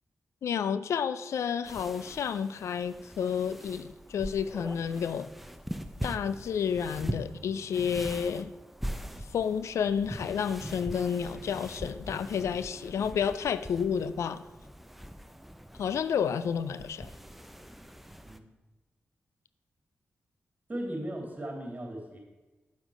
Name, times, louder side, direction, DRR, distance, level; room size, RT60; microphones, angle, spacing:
voice 1, 0.4-5.3 6.0-8.5 9.3-14.4 15.8-17.1, left 7 dB, 85° left, 14 dB, 0.4 m, -30 dB
sound 1, 1.6-18.4, equal, 5° right, 0.8 m, -42 dB
voice 2, 20.7-22.2, right 1 dB, 35° right, 1 dB, 3.0 m, -37 dB
9.1 x 7.3 x 5.0 m, 1.2 s
cardioid pair, 55°, 5 cm